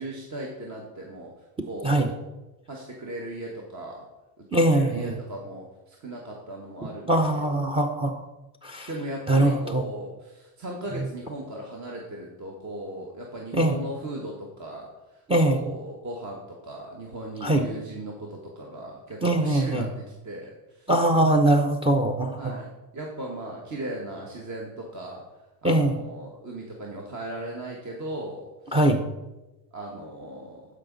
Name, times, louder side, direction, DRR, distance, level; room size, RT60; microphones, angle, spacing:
voice 1, 0.0-1.3 1.6-2.2 2.7-4.0 4.4-7.1 7.5-7.6 8.9-19.9 20.2-20.9 22.4-22.7 22.9-25.2 25.6-28.8 29.7-30.6, right 1 dB, 35° right, -1 dB, 1.5 m, -37 dB
voice 2, 4.5-5.1 7.1-8.3 8.6-8.9 9.3-9.8 13.5-13.8 15.3-15.6 17.4-17.6 19.2-19.9 20.9-22.6 25.6-26.0 28.7-29.0, right 1 dB, 10° right, 6 dB, 0.7 m, -22 dB
12.0 x 5.1 x 3.9 m, 1.0 s
supercardioid pair, 105°, 50 cm